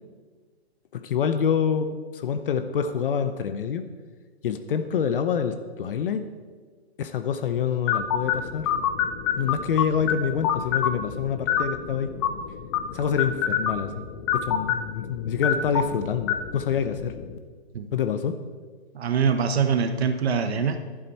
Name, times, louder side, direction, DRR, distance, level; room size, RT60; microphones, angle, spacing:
voice 1, 0.9-3.8 4.4-6.3 7.0-8.7 9.4-12.1 12.9-13.9 14.3-17.2 17.9-18.4, left 7 dB, 55° left, 10 dB, 0.8 m, -26 dB
sound 1, 7.9-17.4, left 8 dB, 25° left, 0.5 m, -28 dB
voice 2, 18.9-20.8, right 6 dB, 70° right, 7 dB, 1.1 m, -23 dB
11.5 x 10.5 x 4.3 m, 1.5 s
hypercardioid pair, 150°, 33 cm